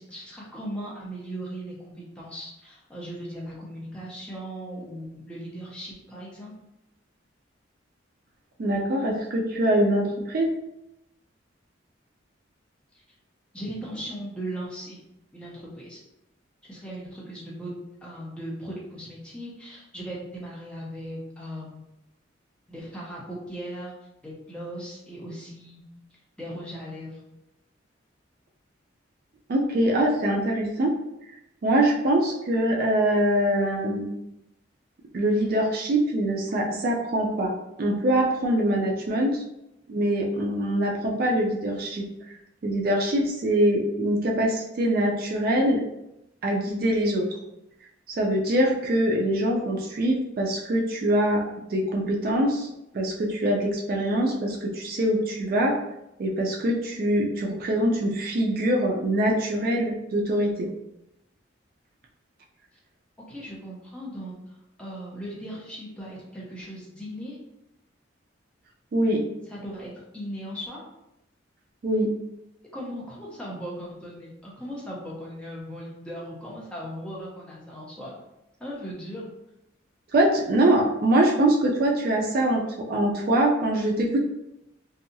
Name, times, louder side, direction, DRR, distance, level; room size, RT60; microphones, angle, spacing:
voice 1, 0.0-6.5 12.9-13.0 13.5-15.0 15.3-16.0 16.6-17.7 18.0-21.8 22.7-23.9 24.2-25.8 26.4-27.2 63.3-67.4 69.5-70.8 72.7-78.1 78.6-79.3, equal, 5° left, -6 dB, 0.6 m, -38 dB
voice 2, 8.6-10.5 29.5-30.9 31.6-34.1 35.1-37.5 37.8-39.4 39.9-42.1 42.6-45.8 46.4-47.3 48.1-51.4 51.7-52.7 52.9-55.7 56.2-60.7 68.9-69.2 71.8-72.1 80.1-84.2, right 1 dB, 50° right, 0 dB, 0.3 m, -23 dB
2.7 x 2.3 x 2.6 m, 0.88 s
head